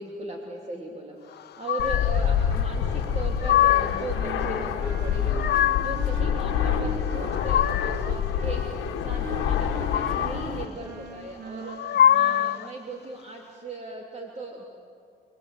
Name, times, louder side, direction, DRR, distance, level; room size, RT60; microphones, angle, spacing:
voice 1, 0.0-14.6, right 2 dB, 35° right, 0 dB, 3.2 m, -38 dB
sound 1, 1.7-2.3 3.1-4.1 5.1-6.1 7.0-8.1 9.7-10.5 11.6-12.7, left 11 dB, 55° left, 0.6 m, -24 dB
Fixed-wing aircraft airplane, 1.8-10.6, left 8 dB, 90° left, 1.6 m, -27 dB
Wind instrument woodwind instrument, 3.6-12.6, right 2 dB, 65° right, 4.8 m, -40 dB
29.0 x 22.0 x 8.6 m, 2.4 s
cardioid pair, 90°, 20 cm